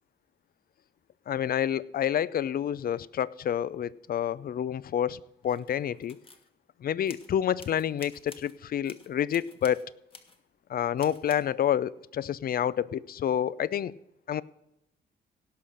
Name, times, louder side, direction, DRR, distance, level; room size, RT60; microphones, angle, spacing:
voice 1, 1.3-6.2 6.8-9.8 10.7-13.9 14.3-14.4, left 9 dB, 50° left, 20 dB, 0.5 m, -28 dB
sound 1, 5.4-6.5 7.1-7.3 7.6-8.6 8.8-9.9 10.1-10.4 11.0-11.4, left 3 dB, 25° left, 1.5 m, -51 dB
17.0 x 5.8 x 6.4 m, 0.84 s
cardioid pair, 90°, 20 cm